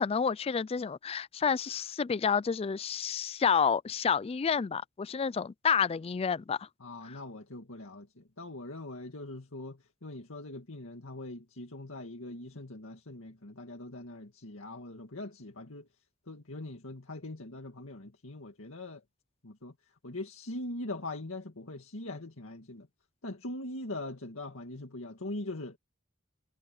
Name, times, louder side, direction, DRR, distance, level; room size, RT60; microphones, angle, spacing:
voice 1, 0.0-6.7, left 6 dB, 30° left, 0.3 m, -29 dB
voice 2, 6.8-15.9 16.3-19.0 19.4-19.7 20.0-22.9 23.2-25.8, left 2 dB, 75° left, 2.1 m, -42 dB
head